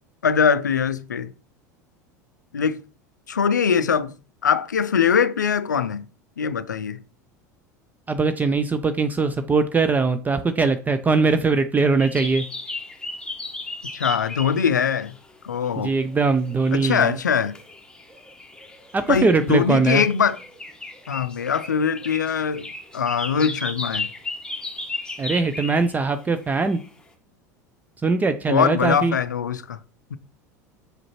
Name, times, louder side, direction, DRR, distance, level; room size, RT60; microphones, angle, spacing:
voice 1, 0.2-1.3 2.5-2.8 3.3-4.1 4.4-6.0 6.4-7.0 13.9-15.1 15.4-15.9 16.7-17.5 19.1-20.4 21.1-24.1 28.5-29.8 30.1-30.2, left 7 dB, 85° left, 0.4 m, -22 dB
voice 2, 8.1-12.4 15.8-17.2 18.9-20.0 25.2-26.8 28.0-29.2, right 4 dB, 20° right, 0.4 m, -21 dB
sound 1, 12.0-15.3 15.6-26.1 26.4-26.9, left 2 dB, 10° left, 1.2 m, -35 dB
6.4 x 4.9 x 3.0 m
hypercardioid pair, 80°, 9 cm